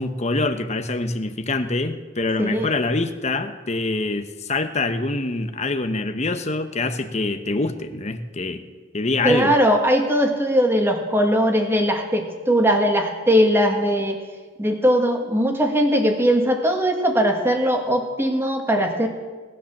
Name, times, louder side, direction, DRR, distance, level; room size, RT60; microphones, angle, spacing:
voice 1, 0.0-8.6 8.9-9.5, left 2 dB, 35° left, 8 dB, 1.0 m, -25 dB
voice 2, 2.4-2.7 9.2-14.2 14.6-19.1, equal, 15° right, 3 dB, 1.9 m, -20 dB
19.0 x 10.5 x 7.3 m, 1.4 s
head